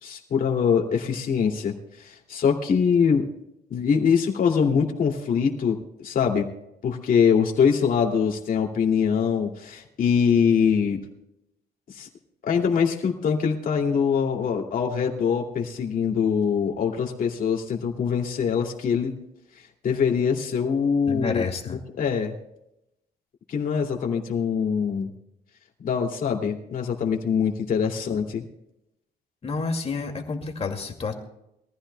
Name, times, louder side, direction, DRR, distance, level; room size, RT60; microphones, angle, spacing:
voice 1, 0.0-3.3 3.7-6.4 6.8-11.0 11.9-12.1 12.4-19.1 19.8-21.4 22.0-22.3 23.5-25.1 25.8-28.5, left 6 dB, 55° left, 1 dB, 2.5 m, -23 dB
voice 2, 21.1-21.8 29.4-31.1, left 4 dB, 35° left, 3 dB, 2.3 m, -29 dB
22.5 x 14.5 x 2.2 m, 0.84 s
cardioid pair, 135°, 17 cm